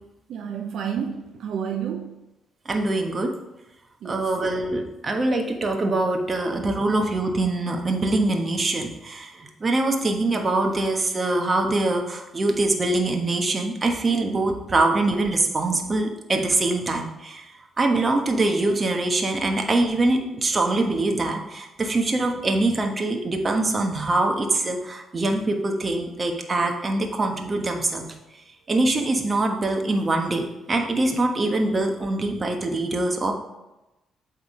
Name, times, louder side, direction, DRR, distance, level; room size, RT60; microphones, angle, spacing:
voice 1, 0.3-2.2 4.0-4.3, right 8 dB, 70° right, 4 dB, 0.6 m, -30 dB
voice 2, 2.6-3.3 4.0-28.1 28.7-33.3, right 2 dB, 30° right, 3 dB, 1.2 m, -24 dB
8.1 x 3.6 x 4.8 m, 0.97 s
cardioid pair, 90°, 0 cm